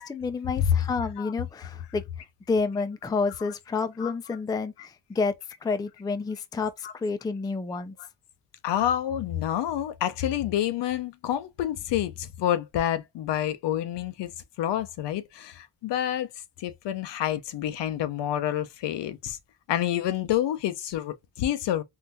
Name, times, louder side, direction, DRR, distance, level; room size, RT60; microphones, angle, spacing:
voice 1, 0.0-2.0 2.5-5.3 5.6-7.9, left 4 dB, 10° left, 0.4 m, -29 dB
voice 2, 8.6-14.3 14.6-16.3 16.6-19.4 19.7-21.8, left 11 dB, 70° left, 0.7 m, -28 dB
3.8 x 2.5 x 2.7 m
cardioid pair, 85°, 44 cm